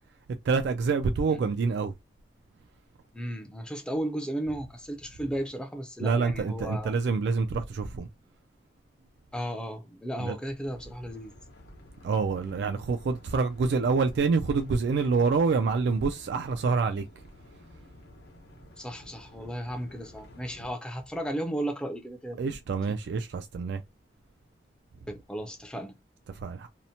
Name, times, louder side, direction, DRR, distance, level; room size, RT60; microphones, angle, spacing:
voice 1, 0.4-1.9 6.0-8.1 10.2-10.4 12.0-17.1 22.4-23.8 26.4-26.7, right 4 dB, 80° right, 0.3 m, -27 dB
voice 2, 3.1-6.9 9.3-11.3 18.8-22.6 22.9-23.0 25.1-25.9, right 1 dB, 5° left, 0.4 m, -35 dB
sound 1, 10.6-20.7, left 1 dB, 65° left, 0.8 m, -52 dB
2.8 x 2.0 x 2.7 m
head